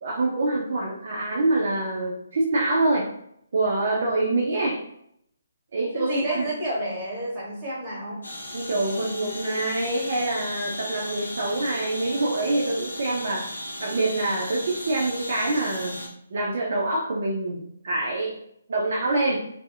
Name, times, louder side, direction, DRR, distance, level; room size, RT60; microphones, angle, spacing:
voice 1, 0.0-3.1 3.5-4.8 5.7-6.5 8.5-13.5 13.8-16.0 16.3-18.4 18.7-19.4, right 2 dB, 55° right, -3 dB, 0.4 m, -25 dB
voice 2, 5.9-8.2, right 1 dB, 15° right, -6 dB, 1.2 m, -30 dB
sound 1, 8.2-16.1, left 1 dB, 80° left, 0.6 m, -36 dB
2.5 x 2.0 x 2.5 m, 0.72 s
figure-of-eight pair, 140°, 0 cm